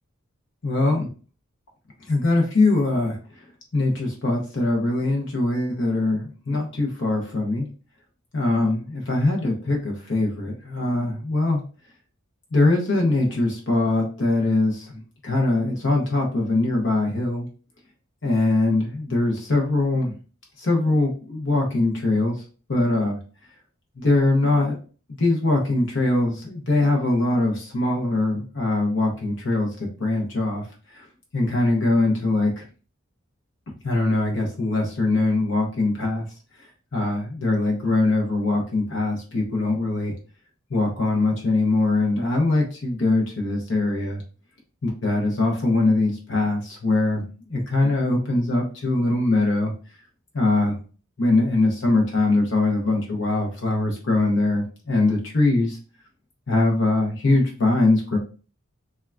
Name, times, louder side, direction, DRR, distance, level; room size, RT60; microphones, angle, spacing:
voice 1, 0.6-1.1 2.1-3.2 3.7-7.7 8.3-11.6 12.5-17.5 18.2-20.1 20.6-22.4 22.7-23.2 24.0-24.8 25.1-30.6 30.9-31.1 31.3-32.6 33.8-36.2 36.9-40.1 40.7-44.2 44.8-49.7 50.3-50.8 51.2-55.8 56.5-58.2, left 2 dB, 60° left, 0 dB, 0.7 m, -22 dB
3.5 x 2.2 x 2.2 m, 0.37 s
head